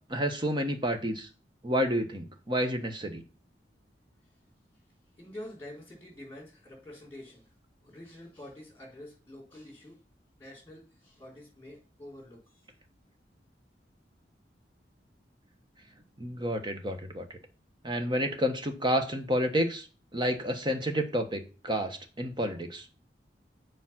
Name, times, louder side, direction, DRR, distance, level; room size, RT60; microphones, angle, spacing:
voice 1, 0.1-1.3 1.6-3.2 16.2-17.3 17.8-19.9 20.1-23.0, equal, 25° right, 6 dB, 1.2 m, -30 dB
voice 2, 5.2-7.5 7.8-10.0 10.4-12.6, left 1 dB, 15° left, -1 dB, 4.3 m, -47 dB
7.3 x 5.0 x 5.8 m, 0.35 s
head